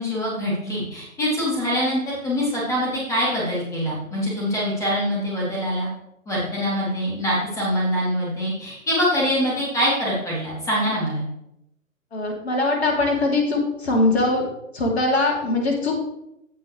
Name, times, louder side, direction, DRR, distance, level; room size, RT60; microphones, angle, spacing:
voice 1, 0.0-5.9 6.2-11.2, equal, 5° left, -6 dB, 3.3 m, -24 dB
voice 2, 12.1-14.4 14.7-16.0, left 2 dB, 50° left, 0 dB, 3.0 m, -21 dB
15.5 x 5.6 x 3.3 m, 0.82 s
figure-of-eight pair, 135°, 41 cm